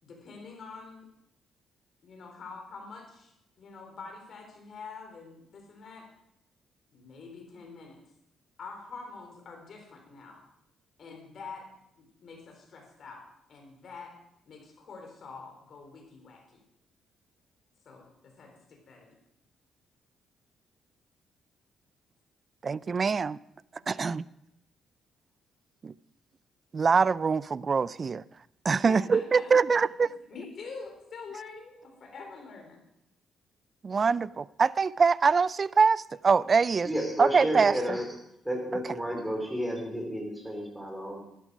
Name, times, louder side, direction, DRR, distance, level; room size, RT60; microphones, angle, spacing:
voice 1, 0.0-1.1 2.0-3.3 3.6-6.1 6.9-8.0 8.6-10.4 11.0-11.6 12.0-13.2 13.5-14.1 14.5-16.6 17.9-19.2 23.7-24.1 28.7-32.8, left 4 dB, 55° left, 2 dB, 3.9 m, -46 dB
voice 2, 22.6-23.4 23.9-24.2 25.8-25.9 26.7-28.2 28.6-30.1 33.8-36.9 37.2-37.7, right 5 dB, 40° right, 20 dB, 0.3 m, -24 dB
voice 3, 36.8-38.1 38.4-41.2, equal, 10° right, 2 dB, 3.8 m, -31 dB
12.5 x 11.0 x 4.9 m, 0.80 s
cardioid pair, 90°, 0 cm